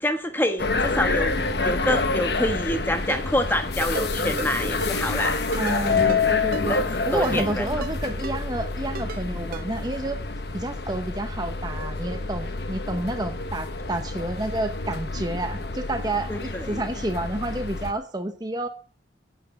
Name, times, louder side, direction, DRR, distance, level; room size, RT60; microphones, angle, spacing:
voice 1, 0.0-1.3 1.6-5.4 6.7-6.8 7.1-7.8 16.3-16.8, left 1 dB, 10° left, 7 dB, 1.2 m, -27 dB
sound 1, 0.6-17.9, left 3 dB, 65° left, 1.2 m, -28 dB
Ringtone, 3.1-3.2 3.8-4.1 4.4-4.5 4.8-4.9 5.5-5.8 6.1-6.2 6.5-6.7 7.2-7.5 7.8-7.9 8.2-8.4 8.9-9.2 9.5-9.6, right 5 dB, 55° right, 0.4 m, -35 dB
voice 2, 5.6-6.8 7.1-10.2 10.5-18.7, right 1 dB, 20° right, 8 dB, 1.0 m, -30 dB
9.3 x 8.5 x 7.1 m, 0.40 s
head